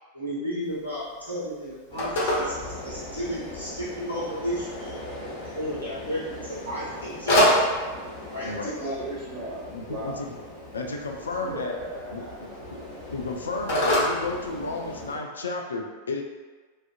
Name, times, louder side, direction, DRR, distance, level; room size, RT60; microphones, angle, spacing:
voice 1, 0.1-5.0 5.4-7.5 8.3-9.0, equal, 85° right, -12 dB, 1.0 m, -33 dB
Telephone, 0.6-15.1, equal, 55° left, 0.8 m, -30 dB
sound 1, 1.9-15.2, left 1 dB, 25° left, 1.1 m, -40 dB
voice 2, 8.4-10.2 11.3-12.8, right 1 dB, 30° right, -10 dB, 1.3 m, -37 dB
voice 3, 9.7-10.4 10.7-11.7 12.1-12.5 13.1-16.2, left 3 dB, 70° left, 2 dB, 0.3 m, -32 dB
2.5 x 2.4 x 2.4 m, 1.4 s
figure-of-eight pair, 90°, 0 cm